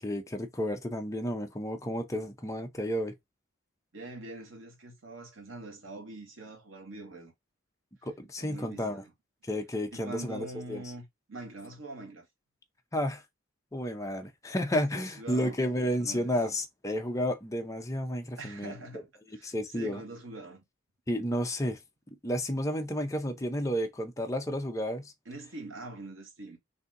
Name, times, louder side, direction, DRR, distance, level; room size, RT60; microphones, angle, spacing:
voice 1, 0.0-3.1 8.0-9.0 9.4-10.8 12.9-13.2 13.7-18.7 19.4-20.0 21.1-21.8 22.2-25.1, equal, 15° left, 0.7 m, -31 dB
voice 2, 3.9-7.3 8.4-9.1 9.9-12.3 14.9-16.3 18.4-19.1 19.3-20.6 25.3-26.6, right 2 dB, 85° right, 1.8 m, -44 dB
4.1 x 2.8 x 3.8 m
head